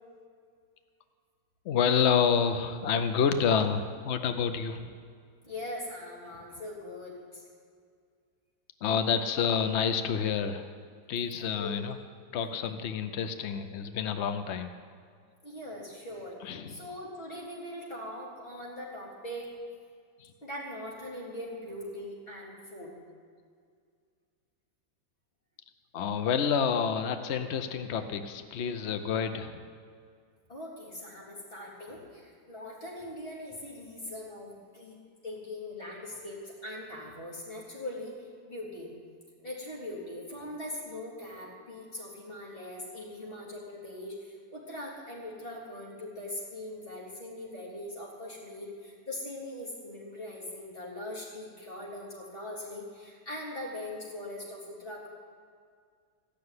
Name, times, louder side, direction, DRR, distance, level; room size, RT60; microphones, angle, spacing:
voice 1, 1.6-4.9 8.8-10.7 11.1-12.0 12.3-14.7 16.4-16.8 20.2-20.3 25.9-29.6, left 7 dB, 80° left, 8 dB, 0.6 m, -28 dB
voice 2, 5.4-7.4 11.4-11.8 15.4-16.4 16.7-19.5 20.4-23.0 30.5-35.0 35.2-38.2 38.5-38.9 39.4-55.1, left 1 dB, 25° left, -6 dB, 3.9 m, -41 dB
15.0 x 6.8 x 9.6 m, 2.1 s
omnidirectional pair, 2.1 m